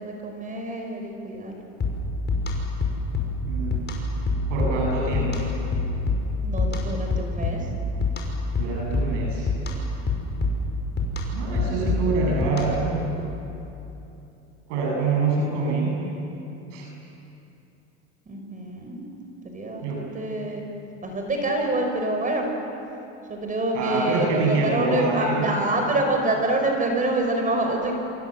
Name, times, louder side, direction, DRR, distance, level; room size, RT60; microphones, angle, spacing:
voice 1, 0.0-1.6 6.4-7.7 18.3-19.0 19.4-20.6 21.0-22.5 23.3-27.9, right 2 dB, 20° right, 2 dB, 5.2 m, -26 dB
sound 1, 1.8-12.9, left 2 dB, 30° left, 5.9 m, -27 dB
voice 2, 3.4-3.8 4.5-5.5 8.6-9.5 11.3-13.0 14.7-16.0 16.7-16.9 19.8-20.1 23.7-25.5, right 3 dB, 85° right, -1 dB, 7.5 m, -25 dB
27.5 x 26.5 x 7.7 m, 2.9 s
supercardioid pair, 115°, 35 cm